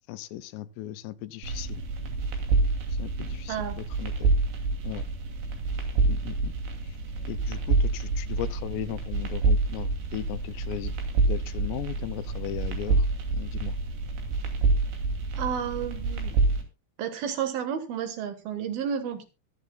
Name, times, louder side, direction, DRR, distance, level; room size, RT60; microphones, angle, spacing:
voice 1, 0.1-1.8 2.9-4.3 4.8-5.0 6.0-6.5 6.8-7.0 7.2-11.0 11.3-13.1 13.3-13.8, left 13 dB, 85° left, 13 dB, 2.9 m, -37 dB
sound 1, 1.4-16.6, right 3 dB, 90° right, 4.8 m, -27 dB
voice 2, 15.3-16.4 17.0-19.2, right 8 dB, 70° right, 8 dB, 3.1 m, -31 dB
23.5 x 8.3 x 2.3 m, 0.27 s
omnidirectional pair, 4.9 m